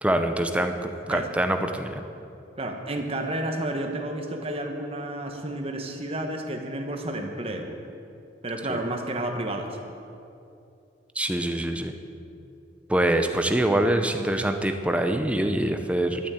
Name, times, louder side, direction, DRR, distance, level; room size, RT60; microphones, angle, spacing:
voice 1, 0.0-2.0 8.7-8.8 11.1-11.9 12.9-16.2, right 1 dB, 5° right, 6 dB, 0.7 m, -24 dB
voice 2, 2.6-7.8 8.4-9.8, right 1 dB, 30° right, 3 dB, 1.3 m, -31 dB
12.0 x 9.3 x 8.3 m, 2.6 s
head